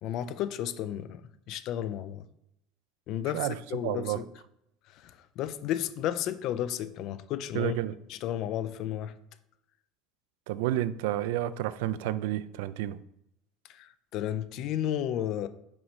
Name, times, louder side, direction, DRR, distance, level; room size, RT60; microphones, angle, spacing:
voice 1, 0.0-2.3 3.1-4.3 5.0-7.7 8.1-9.1 13.7-15.5, left 11 dB, 40° left, 0.3 m, -33 dB
voice 2, 3.8-4.2 7.5-7.9 10.5-13.0, right 13 dB, 80° right, 0.3 m, -30 dB
6.0 x 5.1 x 3.1 m
cardioid pair, 180°, 0 cm